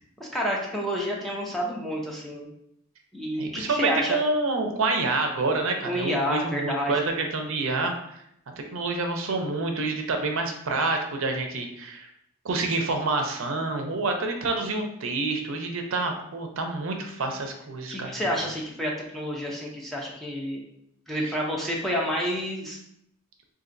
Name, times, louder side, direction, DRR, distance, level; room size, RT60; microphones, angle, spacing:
voice 1, 0.2-2.5 3.1-4.2 5.8-7.1 17.9-20.6 21.1-22.8, equal, ahead, -3 dB, 0.4 m, -29 dB
voice 2, 3.4-8.2 8.6-12.1 12.4-18.2 21.2-21.4, right 3 dB, 60° right, 3 dB, 0.5 m, -28 dB
4.0 x 2.5 x 2.5 m, 0.75 s
head